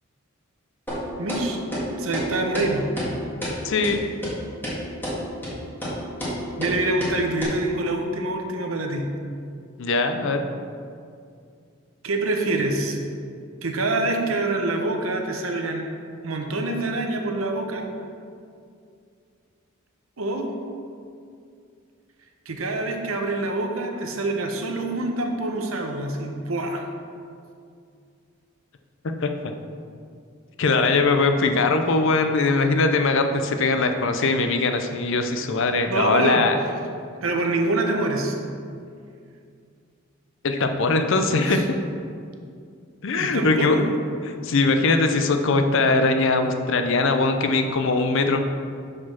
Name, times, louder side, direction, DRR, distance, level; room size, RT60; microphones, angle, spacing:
sound 1, 0.9-1.0 1.3-1.4 1.7-1.8 2.1-2.3 2.5-2.7 3.0-3.1 3.4-3.5 3.8-3.9 4.2-4.3 4.6-4.8 5.0-5.2 5.4-5.5 5.8-5.9 6.2-6.3 6.6-6.7 7.0-7.1 7.4-7.5, equal, 10° left, 1.7 m, -29 dB
voice 1, 1.2-1.6 2.0-2.9 6.6-9.0 12.0-13.0 13.6-15.9 16.2-17.8 20.2-20.5 22.5-26.8 35.8-36.5 37.2-38.4 41.4-41.7 43.2-43.9, right 2 dB, 90° right, 3 dB, 0.9 m, -26 dB
voice 2, 3.6-4.0 9.8-10.4 29.2-29.3 30.6-36.6 40.4-41.6 43.0-43.8 44.2-48.4, left 3 dB, 65° left, 6 dB, 0.6 m, -21 dB
6.0 x 5.1 x 5.8 m, 2.3 s
head